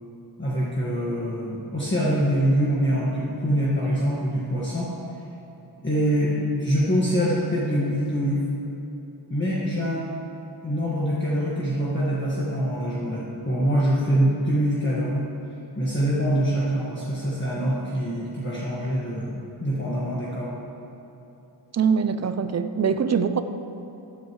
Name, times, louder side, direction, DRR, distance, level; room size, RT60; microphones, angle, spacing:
voice 1, 0.4-4.9 5.8-8.4 9.3-10.1 10.6-15.3 15.8-20.5, equal, 25° left, -7 dB, 1.7 m, -24 dB
voice 2, 21.7-23.4, right 6 dB, 35° right, 10 dB, 0.5 m, -23 dB
14.0 x 11.5 x 3.1 m, 3.0 s
wide cardioid pair, 110°, 47 cm